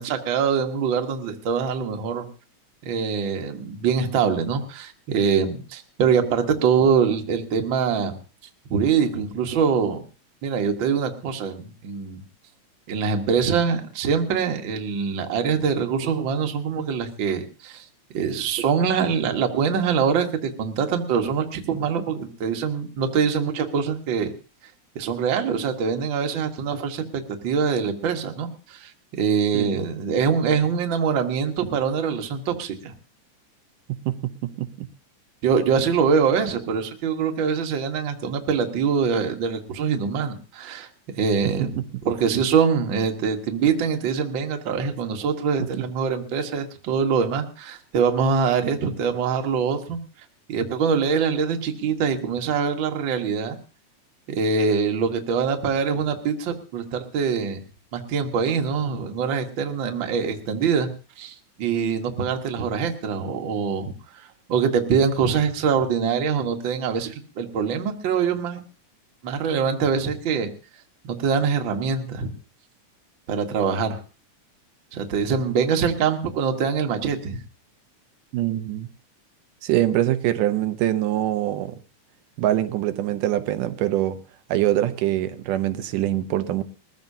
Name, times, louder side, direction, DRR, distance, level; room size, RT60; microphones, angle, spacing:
voice 1, 0.0-2.2 2.8-8.1 8.7-10.0 10.4-12.2 12.9-17.9 18.1-24.3 24.9-28.9 29.2-32.9 35.4-40.9 41.1-41.8 42.0-50.0 50.5-53.5 54.3-57.6 57.9-60.9 61.2-68.6 69.2-70.5 71.1-72.3 73.3-74.0 74.9-77.4, right 6 dB, 50° right, 1.7 m, -24 dB
voice 2, 34.4-34.9 41.6-41.7 78.3-78.9 79.6-81.8 82.4-84.2 84.5-86.6, right 13 dB, 90° right, 2.4 m, -24 dB
21.0 x 14.5 x 2.7 m
omnidirectional pair, 3.6 m